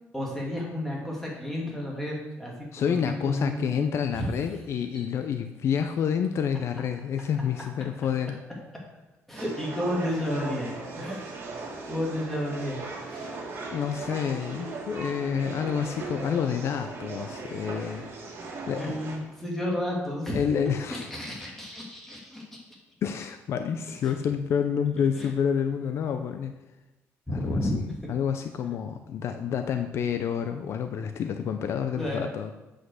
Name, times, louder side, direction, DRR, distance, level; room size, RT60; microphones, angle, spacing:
voice 1, 0.1-3.7 4.1-4.2 4.9-5.0 9.3-10.7 11.0-11.2 11.8-13.3 18.8-20.4 20.9-22.6 24.0-24.1 25.2-25.3 27.3-27.6 32.0-32.3, left 1 dB, 5° left, -3 dB, 2.4 m, -32 dB
voice 2, 2.7-8.4 13.7-18.1 18.7-19.0 20.3-21.0 23.0-26.5 27.3-32.5, left 7 dB, 60° left, 7 dB, 0.5 m, -28 dB
sound 1, 9.4-19.2, right 3 dB, 50° right, 1.8 m, -38 dB
8.2 x 5.1 x 6.4 m, 1.0 s
cardioid pair, 135°, 5 cm